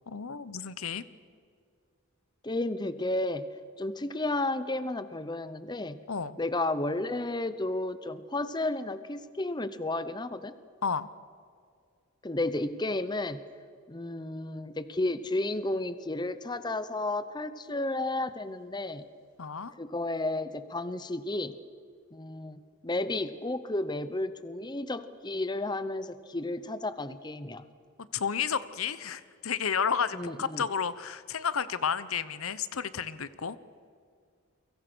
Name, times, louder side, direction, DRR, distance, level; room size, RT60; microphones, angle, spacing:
voice 1, 0.1-1.0 6.1-6.4 10.8-11.1 19.4-19.7 28.1-33.6, left 6 dB, 80° left, 15 dB, 0.9 m, -31 dB
voice 2, 2.4-3.5 3.8-6.0 6.4-10.5 12.2-13.4 13.9-19.0 19.8-21.6 22.1-27.6 30.1-30.6, left 2 dB, 20° left, 13 dB, 0.8 m, -32 dB
30.0 x 23.5 x 6.2 m, 2.1 s
head